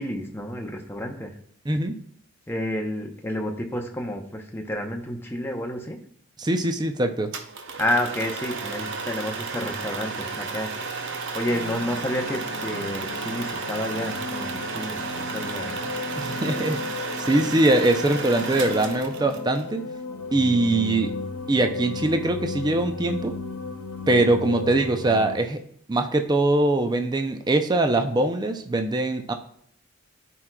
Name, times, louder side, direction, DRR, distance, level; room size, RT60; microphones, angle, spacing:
voice 1, 0.0-1.3 2.5-6.0 7.8-10.7 11.3-15.9, left 1 dB, 10° left, 2 dB, 0.7 m, -30 dB
voice 2, 1.7-2.0 6.4-7.3 16.2-19.9 20.3-21.1 21.5-23.4 24.1-25.6 25.9-29.3, right 2 dB, 20° right, 6 dB, 0.4 m, -22 dB
sound 1, 7.3-19.6, right 4 dB, 55° right, 0.7 m, -33 dB
sound 2, 11.5-25.4, left 3 dB, 80° left, 0.6 m, -35 dB
13.0 x 4.6 x 2.2 m, 0.65 s
head